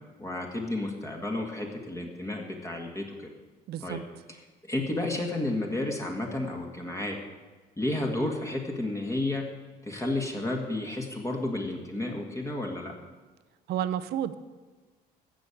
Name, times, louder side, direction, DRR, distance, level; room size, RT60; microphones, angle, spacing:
voice 1, 0.2-3.3 3.8-4.0 4.3-4.4 4.6-7.2 7.8-9.5 9.8-12.9, left 2 dB, 15° left, 1 dB, 1.9 m, -31 dB
voice 2, 3.7-4.0 13.7-14.3, right 10 dB, 75° right, 14 dB, 0.8 m, -30 dB
14.5 x 6.3 x 8.7 m, 1.3 s
cardioid pair, 110°, 17 cm